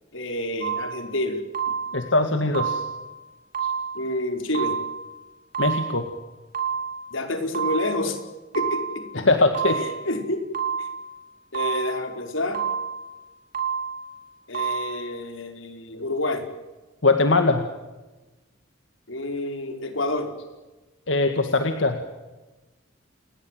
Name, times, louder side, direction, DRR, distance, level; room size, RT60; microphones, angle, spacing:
voice 1, 0.1-1.4 3.9-4.8 7.1-8.2 8.5-9.3 9.7-10.5 10.8-10.9 11.5-12.6 14.5-16.4 19.1-20.3, left 1 dB, 85° left, 5 dB, 5.1 m, -28 dB
sound 1, 0.6-1.1 1.5-2.1 2.5-3.1 3.5-4.1 4.5-5.1 5.5-6.1 6.5-7.1 7.5-8.1 8.5-9.1 9.5-10.1 10.5-11.1 11.5-12.1 12.5-13.1 13.5-14.1 14.5-15.1, right 7 dB, 45° right, 4.5 m, -29 dB
voice 2, 1.9-2.8 5.6-6.1 9.2-9.8 17.0-17.6 21.1-22.0, left 3 dB, 70° left, 6 dB, 2.1 m, -21 dB
29.5 x 21.0 x 7.8 m, 1.1 s
head